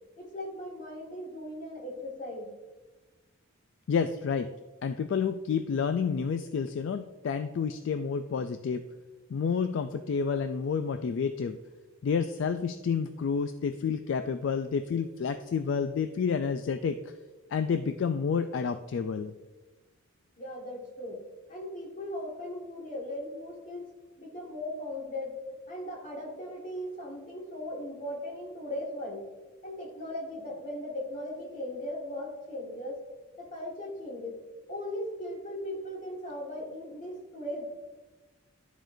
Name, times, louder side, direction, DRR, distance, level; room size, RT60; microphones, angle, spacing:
voice 1, 0.2-2.5 20.4-21.2 21.5-23.9 24.2-25.4 25.7-29.3 29.6-33.0 33.4-34.4 34.7-37.6, left 1 dB, 35° left, -2 dB, 1.7 m, -38 dB
voice 2, 3.9-4.5 4.8-8.8 9.3-11.6 12.0-17.0 17.5-19.3, left 6 dB, 60° left, 8 dB, 0.3 m, -29 dB
12.5 x 4.5 x 2.6 m, 1.2 s
head